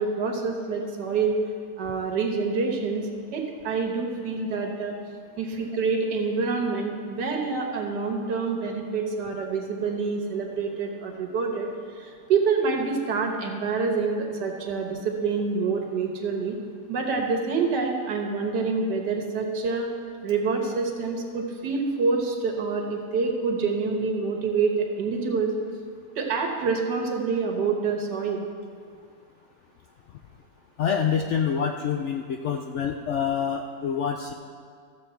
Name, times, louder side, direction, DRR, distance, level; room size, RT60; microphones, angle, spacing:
voice 1, 0.0-1.4 1.8-4.9 5.4-11.7 11.9-16.6 16.9-19.9 20.2-25.5 26.2-28.5, right 4 dB, 90° right, 2 dB, 1.8 m, -27 dB
voice 2, 30.8-34.3, left 7 dB, 75° left, 4 dB, 0.6 m, -26 dB
13.5 x 7.3 x 4.4 m, 2.1 s
omnidirectional pair, 1.8 m